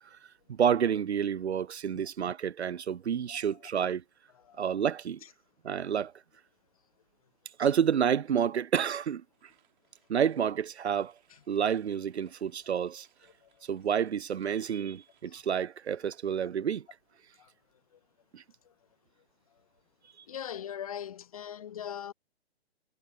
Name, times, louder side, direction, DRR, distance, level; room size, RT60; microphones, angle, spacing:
voice 1, 0.5-4.0 4.6-5.2 5.6-6.1 7.6-9.2 10.1-11.1 11.5-13.1 13.7-16.9 18.3-18.4, right 8 dB, 85° right, 0.5 m, -29 dB
sound 1, 9.3-16.7 17.0-17.5, right 10 dB, 50° right, 6.7 m, -70 dB
voice 2, 20.3-22.1, left 9 dB, 35° left, 0.4 m, -40 dB
figure-of-eight pair, 125°, 32 cm